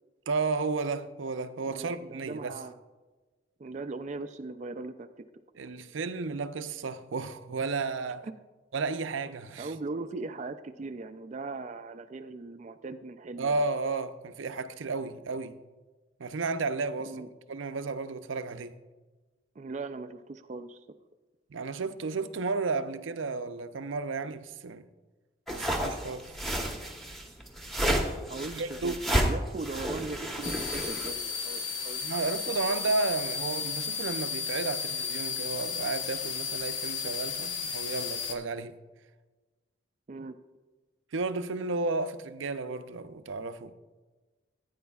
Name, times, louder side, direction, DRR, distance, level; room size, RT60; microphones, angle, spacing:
voice 1, 0.3-2.6 5.6-8.3 8.7-9.7 13.4-15.6 16.2-17.2 17.5-18.8 21.5-24.8 25.5-26.3 28.5-29.0 32.0-38.8 41.1-43.7, right 3 dB, 80° right, 0.6 m, -33 dB
voice 2, 1.6-2.8 3.6-5.2 8.2-8.3 9.6-13.6 17.0-17.3 19.6-20.9 28.3-32.0 40.1-40.4, right 3 dB, 35° right, 0.4 m, -39 dB
sound 1, 25.5-31.1, right 1 dB, ahead, 1.0 m, -31 dB
sound 2, 30.4-38.3, left 6 dB, 70° left, 1.1 m, -34 dB
16.0 x 9.4 x 2.3 m
head